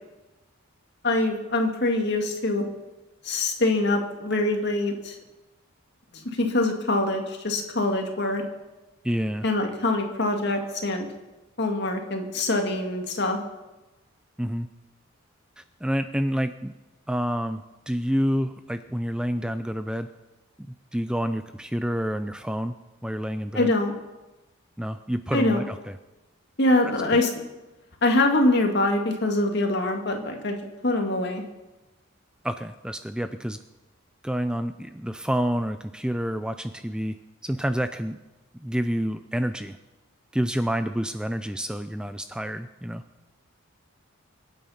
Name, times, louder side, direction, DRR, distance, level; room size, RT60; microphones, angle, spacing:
voice 1, 1.0-2.6 3.2-5.2 6.1-8.4 9.4-11.1 11.6-13.4 23.5-23.9 25.3-25.6 26.6-27.3 28.0-30.6 30.8-31.4, left 2 dB, 55° left, 3 dB, 2.1 m, -24 dB
voice 2, 9.0-9.4 14.4-14.7 15.6-16.7 17.1-20.1 20.9-22.7 23.0-23.7 24.8-26.0 27.1-27.2 32.4-33.6 34.2-37.2 37.4-38.2 38.5-39.8 40.3-43.0, equal, 5° right, 9 dB, 0.4 m, -28 dB
23.0 x 9.1 x 5.7 m, 1.1 s
head